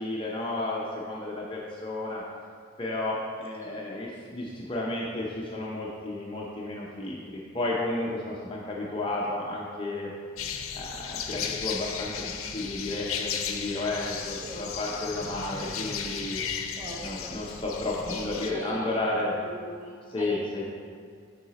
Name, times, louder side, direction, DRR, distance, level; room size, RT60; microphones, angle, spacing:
voice 1, 0.0-2.2 2.8-10.1 10.7-16.4 17.0-19.3 20.1-20.6, left 2 dB, 25° left, -4 dB, 0.6 m, -32 dB
sound 1, 10.4-18.5, left 7 dB, 75° left, 0.6 m, -35 dB
voice 2, 16.8-17.4 18.1-20.6, equal, 10° right, -5 dB, 1.1 m, -41 dB
7.7 x 4.8 x 4.1 m, 2.1 s
head